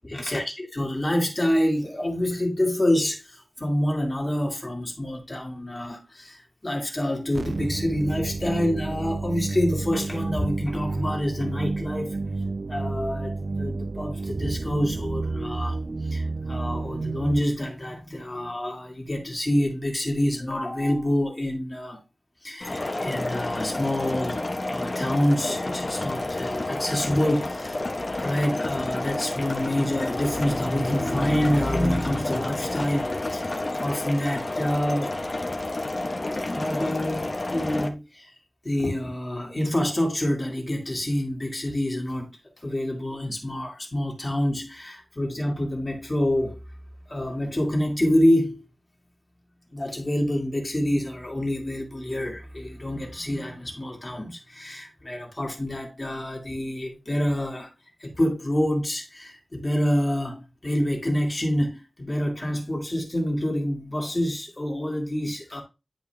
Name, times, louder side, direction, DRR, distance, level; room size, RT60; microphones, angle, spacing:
voice 1, 0.1-12.2 12.7-22.0 22.4-27.9 28.2-35.1 36.4-38.3 38.6-46.6 47.1-48.6 49.7-57.7 58.0-65.6, left 1 dB, 30° left, 2.1 m, -27 dB
sound 1, 7.3-17.4, right 3 dB, 60° right, 0.4 m, -30 dB
sound 2, 22.6-37.9, left 2 dB, 45° left, 1.2 m, -30 dB
10.5 x 4.6 x 3.4 m
wide cardioid pair, 80°, 0 cm